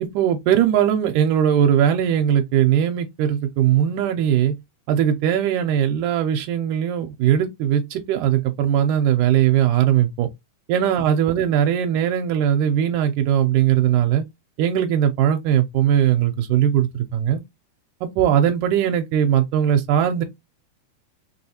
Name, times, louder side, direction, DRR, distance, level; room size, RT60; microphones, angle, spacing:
voice 1, 0.1-4.6 4.9-10.3 10.7-14.2 14.6-17.4 18.0-20.2, right 10 dB, 80° right, 2.1 m, -19 dB
5.9 x 3.1 x 2.8 m
omnidirectional pair, 3.6 m